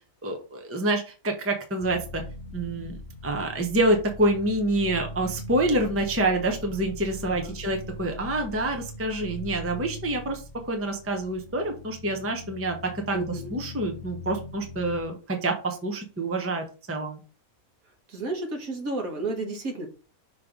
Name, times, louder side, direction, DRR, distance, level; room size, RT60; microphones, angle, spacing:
voice 1, 0.2-2.2 2.5-13.2 13.5-17.2, right 1 dB, 10° right, 3 dB, 0.8 m, -27 dB
sound 1, 1.8-15.0, left 1 dB, 55° left, 0.8 m, -41 dB
voice 2, 7.2-7.6 13.1-13.5 18.1-19.9, right 2 dB, 65° right, 3 dB, 1.9 m, -32 dB
5.9 x 3.2 x 5.1 m, 0.34 s
omnidirectional pair, 1.6 m